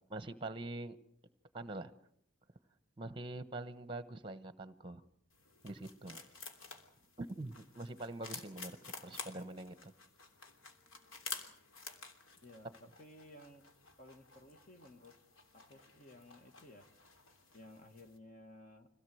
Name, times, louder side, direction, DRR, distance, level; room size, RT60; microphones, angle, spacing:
voice 1, 0.1-1.0 1.5-1.9 3.0-5.0 5.6-6.2 7.2-9.9, right 2 dB, 25° right, 12 dB, 1.1 m, -44 dB
sound 1, 5.3-18.2, left 4 dB, 80° left, 3.2 m, -51 dB
voice 2, 12.4-13.6 14.0-15.2 15.5-16.8 17.5-18.9, left 1 dB, 40° left, 5 dB, 2.0 m, -56 dB
25.0 x 17.0 x 7.9 m, 0.70 s
head